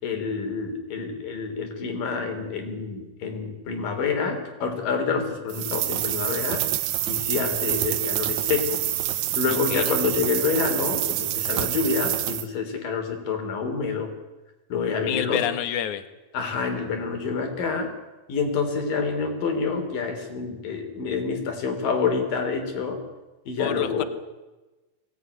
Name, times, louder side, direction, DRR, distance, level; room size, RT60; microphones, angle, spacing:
voice 1, 0.0-6.7 7.1-8.8 9.4-14.1 14.7-15.4 16.3-17.9 18.3-23.0 23.5-24.1, left 5 dB, 85° left, 5 dB, 5.0 m, -27 dB
sound 1, 5.5-12.5, right 13 dB, 90° right, 2.7 m, -27 dB
voice 2, 9.5-10.0 15.1-16.0 23.6-24.0, left 10 dB, 70° left, 11 dB, 2.8 m, -28 dB
23.5 x 18.0 x 9.9 m, 1.1 s
omnidirectional pair, 3.8 m